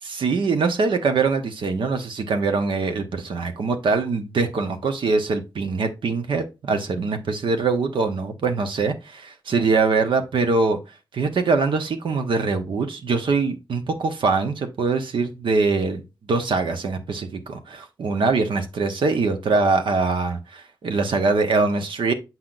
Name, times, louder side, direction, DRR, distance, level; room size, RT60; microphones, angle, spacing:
voice 1, 0.0-10.8 11.1-22.1, right 4 dB, 85° right, 1.2 m, -23 dB
7.6 x 5.8 x 2.5 m
wide cardioid pair, 85°, 8 cm